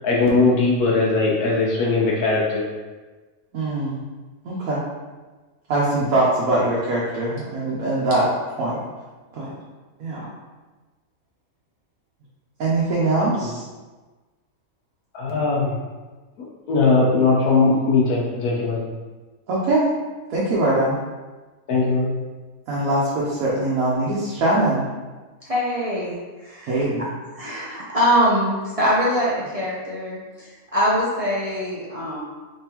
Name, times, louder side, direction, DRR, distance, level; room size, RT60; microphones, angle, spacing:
voice 1, 0.0-2.6 15.1-15.8 16.7-18.9 21.7-22.1, left 3 dB, 80° left, -4 dB, 1.3 m, -19 dB
voice 2, 3.5-4.0 4.4-4.8 5.7-8.3 8.6-8.8 9.3-9.5 10.0-10.3 12.6-13.6 19.5-19.9 20.3-21.0 22.7-24.8 26.7-27.1, right 2 dB, 75° right, -7 dB, 1.1 m, -22 dB
voice 3, 25.4-26.1 26.4-26.9 27.4-30.5 30.7-32.2, equal, 40° right, -7 dB, 0.5 m, -23 dB
3.6 x 3.2 x 2.9 m, 1.3 s
omnidirectional pair, 1.5 m